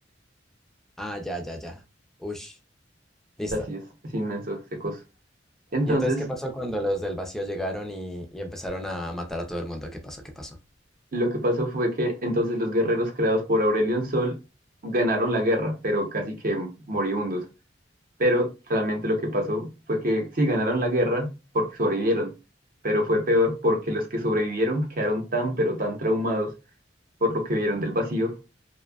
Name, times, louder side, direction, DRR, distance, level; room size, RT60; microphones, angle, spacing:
voice 1, 1.0-1.8 2.2-2.6 3.4-3.5 5.9-10.6, equal, ahead, 0.4 m, -32 dB
voice 2, 3.5-3.8 4.1-5.0 5.7-6.2 11.1-14.4 14.8-17.4 18.2-21.3 21.5-22.3 22.8-26.5 27.2-28.4, equal, 50° right, 0.7 m, -25 dB
2.5 x 2.2 x 2.2 m
head